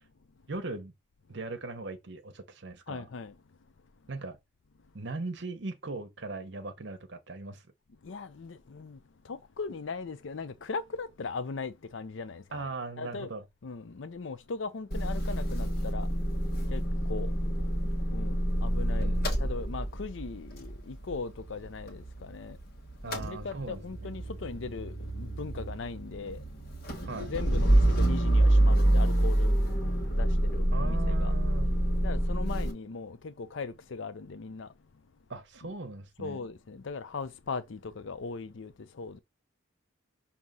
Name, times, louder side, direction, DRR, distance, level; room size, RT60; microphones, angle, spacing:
voice 1, 0.5-0.9 1.3-3.1 4.1-4.4 4.9-7.7 12.5-13.4 19.0-19.4 23.0-23.8 27.0-27.3 30.7-31.7 35.3-36.4, right 3 dB, 60° right, 0.8 m, -39 dB
voice 2, 2.9-3.3 8.0-9.0 9.3-12.6 13.0-13.3 13.6-16.1 16.7-16.8 17.1-17.3 18.1-18.3 18.6-22.6 23.1-26.4 27.3-29.6 30.2-31.3 32.0-34.7 36.2-38.7 39.0-39.2, left 4 dB, 70° left, 0.5 m, -39 dB
Motor vehicle (road) / Engine starting / Idling, 14.9-22.6 22.9-32.7, right 1 dB, 50° left, 1.4 m, -27 dB
6.2 x 2.8 x 5.4 m
head